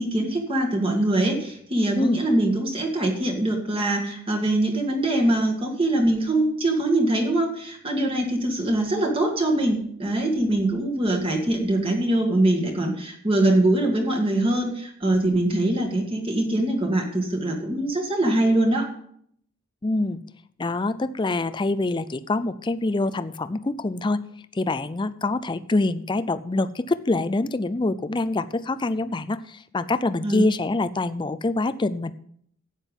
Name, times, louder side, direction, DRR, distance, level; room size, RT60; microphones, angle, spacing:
voice 1, 0.0-18.9 30.2-30.4, right 1 dB, 25° right, 2 dB, 2.0 m, -23 dB
voice 2, 19.8-20.2 20.6-24.2 24.5-32.1, left 2 dB, 20° left, 14 dB, 0.4 m, -25 dB
11.5 x 9.0 x 5.4 m, 0.67 s
head